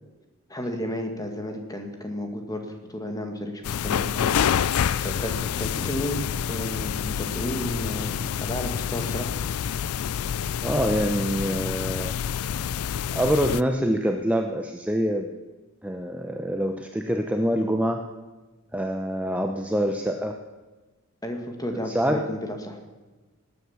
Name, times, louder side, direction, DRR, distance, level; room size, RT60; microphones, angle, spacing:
voice 1, 0.5-4.3 4.7-6.2 6.4-8.1 8.4-9.3 21.2-22.8, equal, 15° left, 4 dB, 1.8 m, -33 dB
sound 1, 3.6-13.6, left 8 dB, 80° left, 0.4 m, -27 dB
voice 2, 10.6-12.1 13.1-15.3 15.8-18.0 18.7-20.3 21.8-22.3, equal, 5° right, 4 dB, 0.7 m, -25 dB
18.5 x 9.5 x 7.1 m, 1.2 s
head